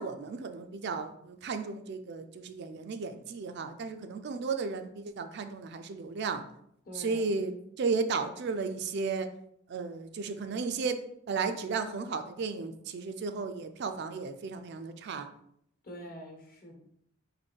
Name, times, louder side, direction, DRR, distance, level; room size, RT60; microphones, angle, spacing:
voice 1, 0.0-6.4 6.9-9.3 9.7-15.3, right 4 dB, 55° right, 8 dB, 0.4 m, -34 dB
voice 2, 6.8-7.3 15.8-16.8, equal, 45° left, 1 dB, 1.1 m, -45 dB
4.2 x 2.6 x 4.5 m, 0.71 s
head